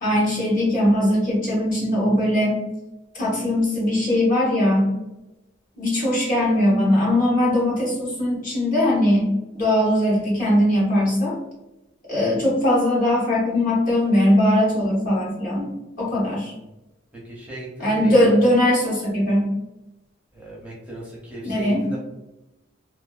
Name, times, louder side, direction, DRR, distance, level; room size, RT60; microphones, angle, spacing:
voice 1, 0.0-2.6 3.2-4.9 5.8-9.3 9.5-11.4 12.1-15.7 16.0-16.5 17.8-19.5 21.4-21.8, left 1 dB, 45° left, -6 dB, 1.0 m, -20 dB
voice 2, 17.2-18.4 20.3-22.0, right 1 dB, 10° right, -5 dB, 0.5 m, -37 dB
2.5 x 2.3 x 2.3 m, 0.99 s
head